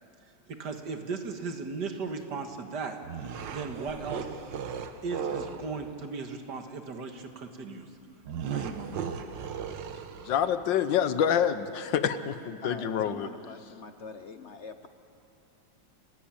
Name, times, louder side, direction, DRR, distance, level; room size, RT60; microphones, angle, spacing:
voice 1, 0.5-3.0 3.5-4.3 5.0-7.9 8.5-9.0, right 4 dB, 65° right, 5 dB, 2.2 m, -36 dB
sound 1, 3.0-5.7 8.3-10.6, right 7 dB, 85° right, 1.8 m, -36 dB
voice 2, 10.2-13.3, left 8 dB, 85° left, 12 dB, 1.6 m, -27 dB
voice 3, 12.6-14.9, left 4 dB, 50° left, 8 dB, 0.9 m, -44 dB
30.0 x 15.5 x 8.8 m, 2.7 s
omnidirectional pair, 1.9 m